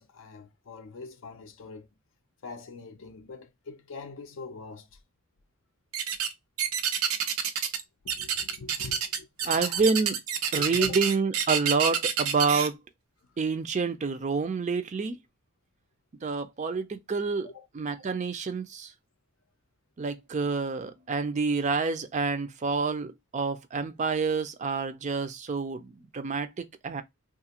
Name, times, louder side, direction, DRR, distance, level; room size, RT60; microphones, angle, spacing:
voice 1, 0.0-1.9 2.4-5.0 8.0-9.8 10.6-11.0 13.3-13.4 17.4-17.7, left 4 dB, 65° left, 0.4 m, -43 dB
sound 1, 5.9-6.3 6.6-7.8 8.1-12.7, right 8 dB, 90° right, 0.5 m, -28 dB
voice 2, 9.5-10.2 10.5-12.8 13.4-15.2 16.2-17.5 17.7-18.9 20.0-27.0, right 4 dB, 35° right, 0.4 m, -28 dB
2.8 x 2.5 x 2.8 m
head